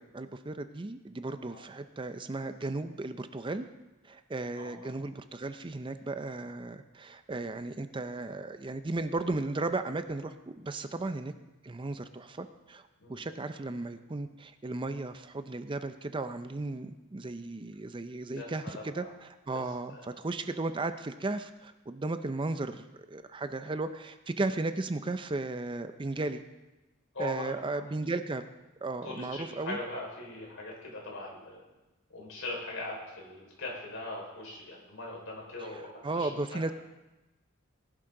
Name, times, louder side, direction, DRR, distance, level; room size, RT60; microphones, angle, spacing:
voice 1, 0.0-3.7 4.0-11.3 11.6-12.8 13.1-26.4 27.2-28.4 28.8-29.8 35.6-36.7, right 2 dB, 25° right, 10 dB, 0.5 m, -35 dB
voice 2, 4.5-4.9 13.0-13.2 18.3-19.1 19.5-19.6 19.9-20.1 27.1-28.1 29.0-31.6 32.1-36.7, left 2 dB, 70° left, -2 dB, 4.7 m, -41 dB
19.0 x 11.5 x 3.8 m, 1.1 s
head